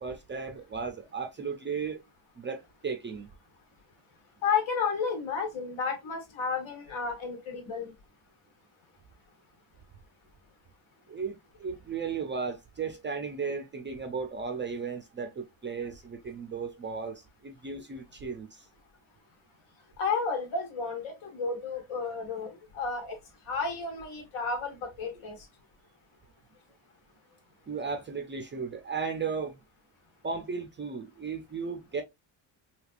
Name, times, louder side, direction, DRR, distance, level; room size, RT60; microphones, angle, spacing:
voice 1, 0.0-2.0 2.4-3.3 11.1-18.7 27.7-29.6 30.2-32.0, right 5 dB, 25° right, 0.3 m, -35 dB
voice 2, 4.4-7.9 20.0-23.2 23.5-25.4, left 5 dB, 75° left, 1.4 m, -32 dB
3.4 x 2.8 x 2.4 m
cardioid pair, 125°, 48 cm